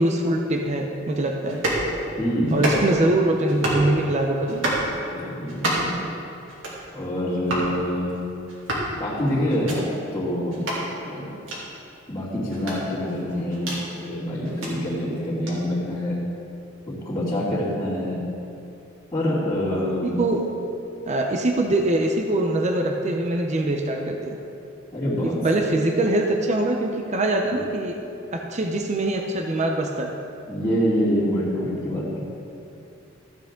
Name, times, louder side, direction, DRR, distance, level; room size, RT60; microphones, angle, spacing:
voice 1, 0.0-1.6 2.5-4.7 19.7-20.5 21.1-24.4 25.2-28.0 28.3-30.1, right 1 dB, 35° right, 2 dB, 0.6 m, -23 dB
sound 1, 1.5-1.9 2.5-3.0 3.5-3.9 4.5-4.9 5.5-6.0 6.5-6.8 7.5-7.7 8.5-8.9 9.5-9.8 10.5-10.8 11.5-11.6 12.5-13.8 14.4-14.7 15.5-15.6, right 1 dB, 75° right, 2.6 m, -28 dB
voice 2, 2.2-2.6 5.1-5.9 6.9-8.1 9.0-9.8 10.1-10.6 11.0-11.3 12.1-13.7 14.0-16.2 16.9-18.3 19.1-20.2 24.9-25.4 27.5-27.6 30.5-32.2, equal, 15° left, -11 dB, 2.6 m, -26 dB
14.0 x 8.2 x 3.8 m, 2.7 s
head